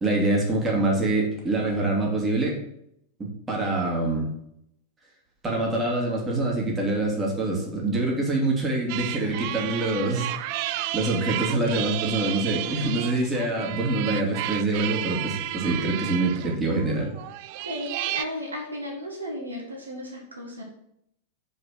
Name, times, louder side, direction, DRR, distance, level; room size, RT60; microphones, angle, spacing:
voice 1, 0.0-2.6 3.2-4.3 5.4-10.3 10.9-17.1, right 2 dB, 20° right, -2 dB, 2.6 m, -25 dB
sound 1, 8.9-18.2, right 15 dB, 45° right, 0.3 m, -32 dB
voice 2, 17.6-20.6, equal, 75° right, 0 dB, 1.5 m, -34 dB
6.6 x 5.1 x 6.2 m, 0.75 s
figure-of-eight pair, 90°, 0 cm